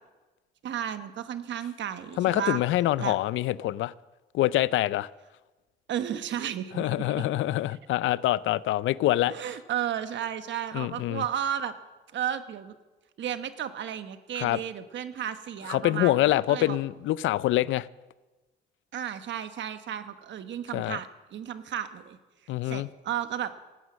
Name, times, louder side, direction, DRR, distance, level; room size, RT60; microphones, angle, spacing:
voice 1, 0.6-2.6 3.0-3.2 5.9-7.3 7.7-7.8 9.3-11.7 12.1-12.7 13.2-16.8 18.9-22.2 22.6-23.5, right 9 dB, 65° right, 1.2 m, -33 dB
voice 2, 2.2-3.9 4.3-5.1 6.8-9.3 10.7-11.2 14.4-14.6 15.7-17.9 20.7-21.0 22.5-22.9, left 15 dB, 80° left, 0.5 m, -25 dB
18.0 x 9.6 x 7.4 m
cardioid pair, 90°, 20 cm